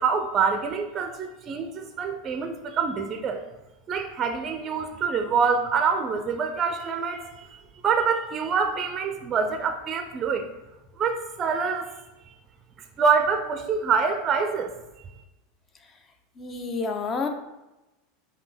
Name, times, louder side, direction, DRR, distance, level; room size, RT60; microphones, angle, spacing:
voice 1, 0.0-3.4 3.9-7.6 7.8-10.5 11.0-11.9 13.0-14.7, right 5 dB, 35° right, 6 dB, 0.4 m, -26 dB
voice 2, 16.4-17.3, left 4 dB, 30° left, 5 dB, 0.6 m, -29 dB
5.1 x 2.7 x 3.4 m, 0.99 s
hypercardioid pair, 85°, 0 cm